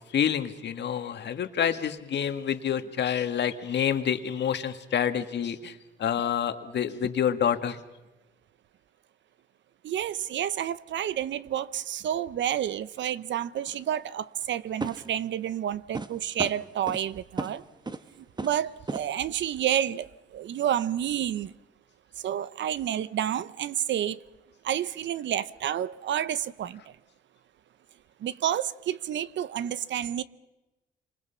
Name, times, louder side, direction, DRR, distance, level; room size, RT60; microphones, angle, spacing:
voice 1, 0.1-7.8, left 8 dB, 60° left, 1.9 m, -28 dB
voice 2, 9.8-17.6 18.2-21.5 22.2-24.2 24.6-26.8 28.2-30.2, right 10 dB, 65° right, 1.0 m, -30 dB
sound 1, 13.7-13.8 14.8-15.2 15.9-16.1 16.4-17.0 17.4-17.5 17.9-18.1 18.4-18.6 18.9-19.1, right 3 dB, 20° right, 1.4 m, -34 dB
28.0 x 26.0 x 5.8 m
cardioid pair, 90°, 20 cm